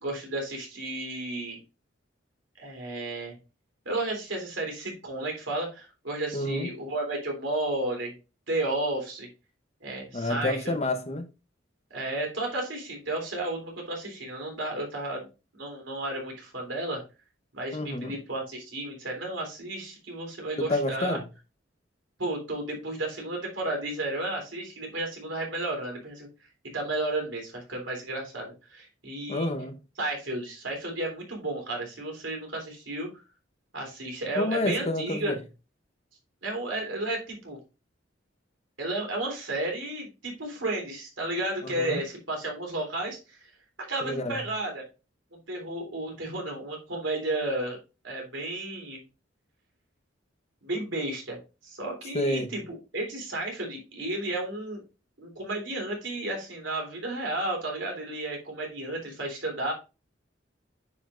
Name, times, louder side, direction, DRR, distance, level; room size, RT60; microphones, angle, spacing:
voice 1, 0.0-1.6 2.6-3.4 3.9-8.1 8.5-9.3 9.8-10.7 11.9-15.3 15.5-17.0 17.5-21.2 22.2-26.3 26.7-29.5 30.0-33.1 33.7-35.4 36.4-37.6 38.8-43.5 43.8-44.8 45.5-47.8 48.0-49.0 50.6-54.8 55.2-59.7, right 2 dB, 70° right, 3.4 m, -33 dB
voice 2, 6.3-6.7 10.1-11.3 17.7-18.1 20.6-21.3 29.3-29.8 34.4-35.4 41.6-42.0 44.0-44.4 52.1-52.5, left 1 dB, 35° left, 0.9 m, -29 dB
9.7 x 5.2 x 2.5 m
head